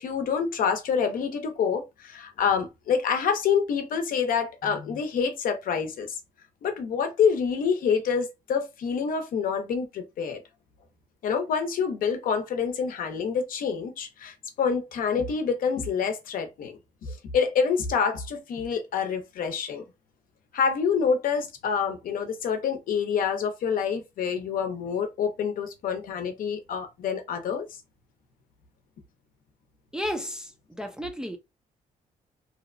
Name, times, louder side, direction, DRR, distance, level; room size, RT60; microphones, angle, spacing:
voice 1, 0.0-6.2 6.6-10.4 11.2-19.8 20.5-27.7, left 6 dB, 70° left, 0.7 m, -27 dB
voice 2, 29.9-31.4, equal, 5° right, 0.4 m, -33 dB
2.8 x 2.1 x 2.5 m
cardioid pair, 130°, 15 cm